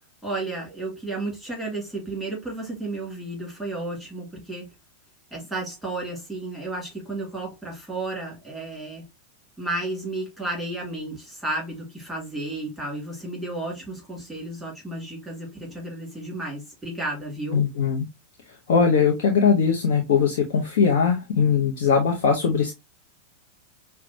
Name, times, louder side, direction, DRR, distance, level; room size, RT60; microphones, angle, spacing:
voice 1, 0.2-4.7 5.3-9.0 9.6-17.7, right 2 dB, 5° right, 2.3 m, -32 dB
voice 2, 17.5-18.1 18.7-22.7, left 6 dB, 55° left, 0.8 m, -20 dB
5.8 x 2.2 x 2.7 m
figure-of-eight pair, 90°, 0 cm